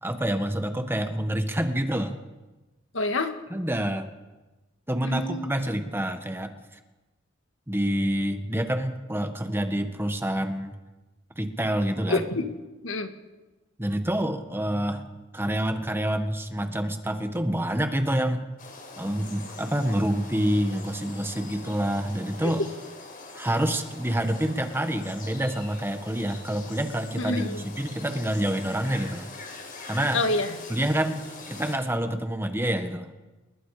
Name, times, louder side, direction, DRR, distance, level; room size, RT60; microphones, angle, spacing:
voice 1, 0.0-2.1 3.5-4.1 4.9-6.5 7.7-10.8 11.3-12.2 13.8-18.5 19.0-22.6 23.3-29.3 29.9-30.2 30.7-33.1, right 1 dB, 10° right, 7 dB, 1.6 m, -27 dB
voice 2, 2.9-3.3 5.0-5.5 12.1-12.4 12.8-13.1 27.2-27.6 30.1-30.6, left 2 dB, 75° left, 6 dB, 2.1 m, -27 dB
sound 1, 18.6-31.8, left 3 dB, 45° left, 5.0 m, -43 dB
29.0 x 21.0 x 5.1 m, 1.1 s
head